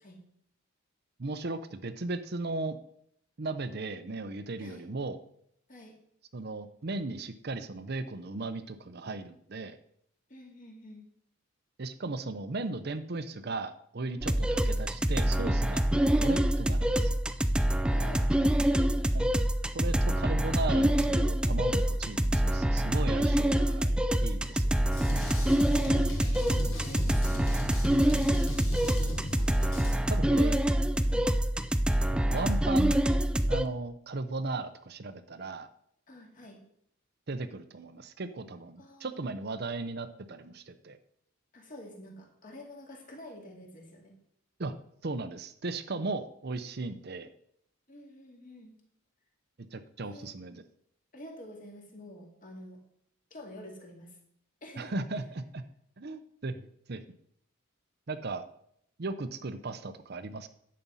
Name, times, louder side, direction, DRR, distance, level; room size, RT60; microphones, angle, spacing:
voice 1, 1.2-2.8 3.4-5.2 6.3-9.8 11.8-17.2 19.1-19.2 19.7-24.7 30.1-30.6 32.2-32.9 33.5-35.7 37.3-41.0 44.6-44.7 45.0-47.3 49.7-50.6 54.8-55.6 56.0-57.0 58.1-58.5 59.0-60.5, right 3 dB, 50° right, 10 dB, 0.6 m, -36 dB
voice 2, 10.3-11.0 17.9-19.0 25.4-26.1 26.4-27.5 27.8-28.3 28.8-29.0 30.4-30.8 31.0-31.3 36.1-36.6 38.8-39.2 41.5-44.1 47.9-48.8 50.0-50.4 51.1-52.8 53.3-54.2 54.6-54.9, left 1 dB, 40° left, 1 dB, 2.4 m, -48 dB
sound 1, 14.2-33.7, right 1 dB, 5° right, 0.4 m, -26 dB
Drum kit, 24.9-29.9, left 1 dB, 90° left, 3.3 m, -39 dB
11.0 x 7.6 x 5.6 m, 0.70 s
head